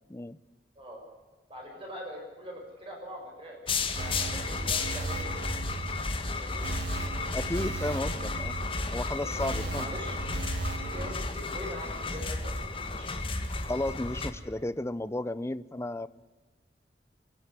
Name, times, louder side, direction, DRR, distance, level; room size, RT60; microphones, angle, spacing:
voice 1, 1.5-5.5 6.3-6.6 9.2-10.2 10.8-13.1, equal, 30° right, -1 dB, 6.0 m, -43 dB
sound 1, 3.7-14.3, left 3 dB, 30° left, 1.7 m, -33 dB
sound 2, 4.0-11.1, right 5 dB, 80° right, 0.9 m, -39 dB
voice 2, 7.3-8.6 8.9-9.9 13.7-16.1, left 1 dB, 15° left, 16 dB, 0.6 m, -33 dB
26.5 x 11.0 x 9.8 m, 1.3 s
head